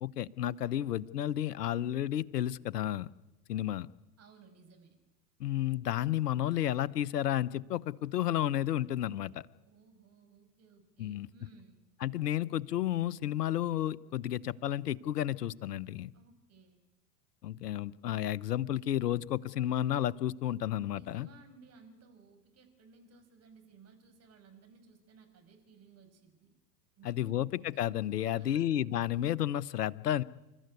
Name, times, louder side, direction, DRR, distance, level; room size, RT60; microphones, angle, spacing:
voice 1, 0.0-3.1 3.5-3.9 5.4-9.4 11.0-11.3 12.0-16.1 17.4-21.3 27.0-30.2, left 12 dB, 75° left, 17 dB, 0.9 m, -32 dB
voice 2, 4.2-5.0 9.6-11.8 16.1-16.8 20.9-26.6 27.0-27.5 28.2-28.7, right 4 dB, 30° right, 5 dB, 5.9 m, -59 dB
28.0 x 13.5 x 9.5 m, 1.1 s
hypercardioid pair, 90°, 48 cm